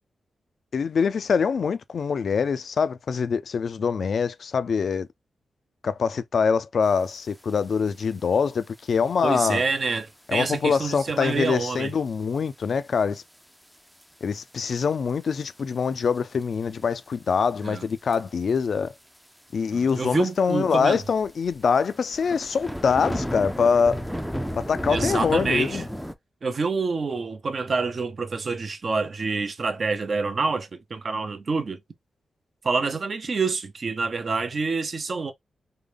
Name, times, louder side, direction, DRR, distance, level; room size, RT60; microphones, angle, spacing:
voice 1, 0.7-5.1 5.8-9.6 10.3-13.2 14.2-18.9 19.5-24.0 24.5-25.8, left 6 dB, 65° left, 0.4 m, -24 dB
sound 1, 7.5-7.6 7.9-8.2 8.9-9.1 9.7-9.8 10.4-10.5 10.8-10.9 11.2-11.3 12.4-12.6 13.0-13.1 14.0-14.1 14.7-15.1 15.5-15.6 16.2-16.8 17.9-18.2 18.5-18.6 18.9-19.0 19.2-19.3 19.9-20.0 20.3-20.4 21.0-26.1, equal, ahead, 0.5 m, -33 dB
voice 2, 9.2-11.9 17.6-17.8 19.7-21.0 24.9-25.8 26.4-31.8 32.6-35.3, right 4 dB, 50° right, 0.7 m, -27 dB
3.7 x 2.2 x 3.3 m
cardioid pair, 90°, 0 cm